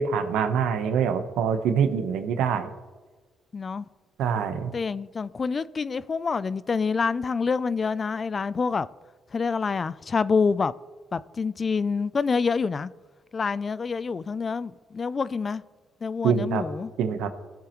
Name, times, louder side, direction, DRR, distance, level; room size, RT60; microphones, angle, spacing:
voice 1, 0.0-2.7 4.2-4.7 16.2-16.7 17.0-17.3, right 7 dB, 90° right, 1.0 m, -25 dB
voice 2, 3.5-3.8 4.7-8.9 9.3-10.7 11.1-12.9 13.3-15.6 16.0-16.9, left 5 dB, 35° left, 0.4 m, -27 dB
19.0 x 7.4 x 3.1 m
cardioid pair, 90°, 0 cm